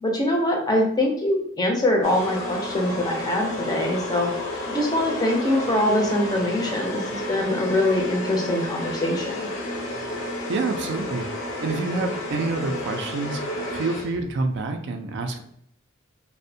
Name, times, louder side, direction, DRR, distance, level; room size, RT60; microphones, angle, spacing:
voice 1, 0.0-4.3 4.7-9.5, left 1 dB, 20° left, 0 dB, 0.4 m, -23 dB
sound 1, 2.0-14.4, left 1 dB, 65° left, 0.5 m, -31 dB
voice 2, 10.5-11.3 11.6-15.4, right 3 dB, 55° right, 6 dB, 0.3 m, -28 dB
2.5 x 2.0 x 2.6 m, 0.68 s
head